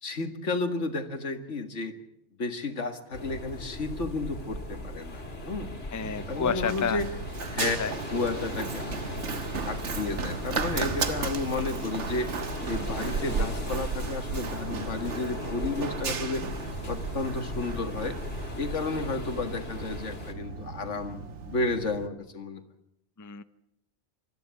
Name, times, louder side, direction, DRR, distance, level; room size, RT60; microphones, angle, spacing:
voice 1, 0.0-2.0 2.4-5.7 6.3-7.1 7.5-7.8 8.1-9.0 9.7-12.4 12.7-16.5 16.9-18.2 18.6-21.2 21.5-22.6, left 3 dB, 85° left, 7 dB, 2.1 m, -32 dB
sound 1, 3.1-20.3, left 2 dB, 60° left, 2.8 m, -38 dB
sound 2, 3.9-20.0, right 2 dB, 60° right, 3.8 m, -49 dB
voice 2, 5.9-7.0 7.6-7.9 23.2-23.4, left 6 dB, 20° left, 13 dB, 0.6 m, -30 dB
Run, 6.0-22.1, right 5 dB, 80° right, 1.5 m, -35 dB
25.5 x 13.5 x 8.2 m, 0.81 s
omnidirectional pair, 1.2 m